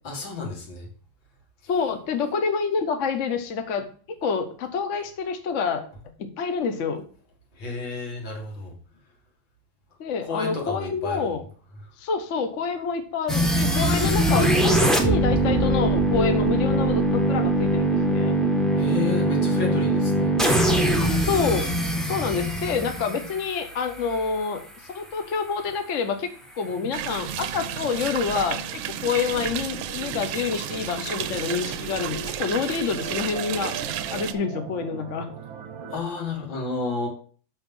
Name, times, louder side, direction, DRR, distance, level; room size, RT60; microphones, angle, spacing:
voice 1, 0.0-0.9 7.6-8.7 10.3-11.3 18.8-20.3 35.9-37.1, left 4 dB, 75° left, 0 dB, 2.7 m, -31 dB
voice 2, 1.7-5.8 6.2-7.0 10.0-11.4 12.0-18.4 21.3-21.7 22.1-26.3 26.6-28.6 29.0-33.7 34.1-35.3, left 5 dB, 50° left, 7 dB, 1.0 m, -27 dB
sound 1, 13.3-24.2, right 1 dB, ahead, 0.5 m, -22 dB
sound 2, 26.7-36.0, right 5 dB, 60° right, 1.1 m, -40 dB
sound 3, 26.9-34.3, right 10 dB, 85° right, 1.4 m, -32 dB
6.1 x 6.1 x 5.3 m, 0.43 s
omnidirectional pair, 2.2 m